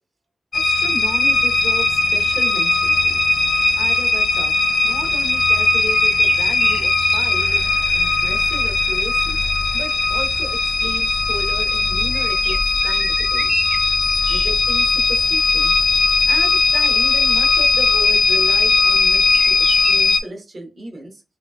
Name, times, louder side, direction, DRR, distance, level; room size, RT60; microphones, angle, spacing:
sound 1, 0.5-20.2, left 3 dB, 60° left, 0.4 m, -18 dB
voice 1, 0.5-3.2 3.8-4.6 4.8-7.7 7.9-9.4 9.7-12.6 12.8-13.5 14.3-15.7 16.3-21.2, right 1 dB, 50° right, 3 dB, 0.9 m, -34 dB
sound 2, 1.2-20.0, right 2 dB, 75° right, 0.6 m, -36 dB
3.1 x 2.9 x 2.2 m, 0.31 s
wide cardioid pair, 130°, 0 cm